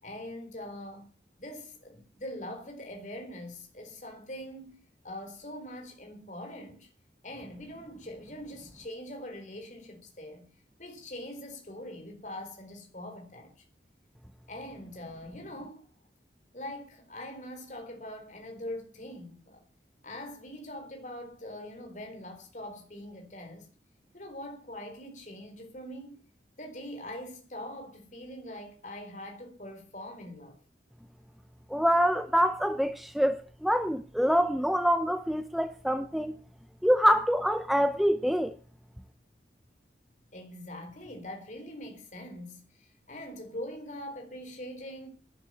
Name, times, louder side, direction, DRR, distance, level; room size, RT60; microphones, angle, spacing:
voice 1, 0.0-1.1 1.4-6.9 7.2-10.5 10.8-13.6 14.5-15.9 16.5-19.6 20.0-23.7 24.1-26.2 26.6-30.6 40.3-45.1, left 1 dB, 45° left, 4.1 m, -43 dB
voice 2, 31.7-36.4 36.8-38.5, equal, ahead, 0.6 m, -25 dB
11.5 x 9.8 x 7.8 m
head